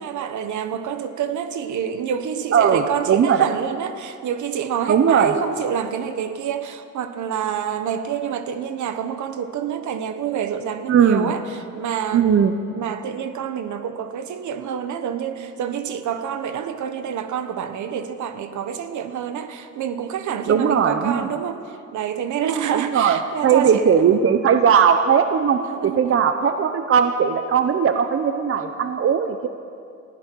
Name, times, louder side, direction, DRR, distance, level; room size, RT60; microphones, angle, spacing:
voice 1, 0.0-24.2 25.6-26.2, right 8 dB, 75° right, 9 dB, 1.3 m, -28 dB
voice 2, 2.5-3.5 4.9-5.3 10.9-11.3 12.1-12.6 20.5-21.3 22.7-29.5, right 7 dB, 45° right, 8 dB, 0.9 m, -18 dB
19.5 x 15.0 x 4.7 m, 2.4 s
cardioid pair, 90°, 30 cm